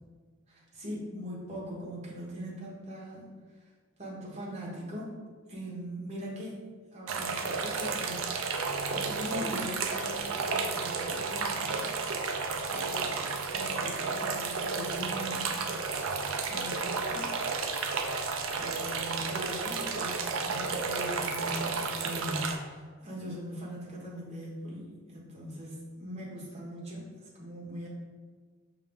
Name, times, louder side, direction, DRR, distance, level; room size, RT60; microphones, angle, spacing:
voice 1, 0.5-3.3 4.0-5.1 5.5-6.6 6.9-8.3 8.9-11.9 12.7-13.3 13.5-15.5 16.5-17.3 18.6-20.2 20.5-27.0 27.4-27.9, equal, 30° right, -5 dB, 1.1 m, -40 dB
sound 1, 7.1-22.6, right 4 dB, 70° right, 0.4 m, -32 dB
5.5 x 2.7 x 3.5 m, 1.5 s
head